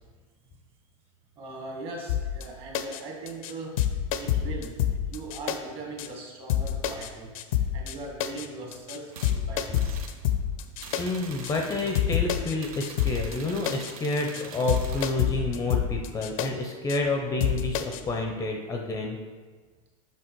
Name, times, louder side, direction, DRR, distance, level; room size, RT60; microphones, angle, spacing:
voice 1, 1.4-3.7 4.2-4.7 5.1-7.3 7.7-10.0 10.3-10.4, right 2 dB, 35° right, 0 dB, 1.7 m, -39 dB
sound 1, 2.1-2.5 2.7-3.0 3.3-3.5 3.8-5.6 6.0-6.1 6.5-7.1 7.4-7.9 8.2-8.5 8.7-9.0 9.2-11.0 11.4-11.5 12.0-12.5 12.8-13.4 13.7-13.9 14.2-14.4 14.7-16.5 16.9-17.0 17.4-18.0, left 10 dB, 80° left, 0.6 m, -27 dB
sound 2, 9.1-9.4 9.7-10.2 10.8-12.1 12.6-15.2, right 5 dB, 85° right, 0.9 m, -44 dB
voice 2, 11.0-19.2, left 2 dB, 20° left, 2 dB, 0.6 m, -29 dB
6.3 x 5.6 x 4.5 m, 1.4 s
supercardioid pair, 135°, 18 cm